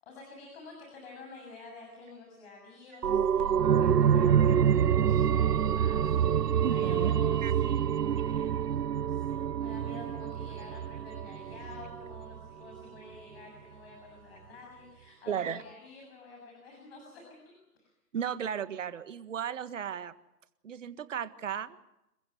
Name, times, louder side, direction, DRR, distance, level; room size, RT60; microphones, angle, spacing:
voice 1, 0.0-17.9, left 3 dB, 40° left, 0 dB, 7.4 m, -50 dB
sound 1, 3.0-12.4 12.7-12.8, right 8 dB, 80° right, 0.9 m, -27 dB
voice 2, 6.6-7.1 7.4-7.5 15.3-15.6 18.1-20.1 20.6-21.8, right 8 dB, 50° right, 13 dB, 1.7 m, -34 dB
28.5 x 15.0 x 9.4 m, 0.87 s
hypercardioid pair, 150°, 47 cm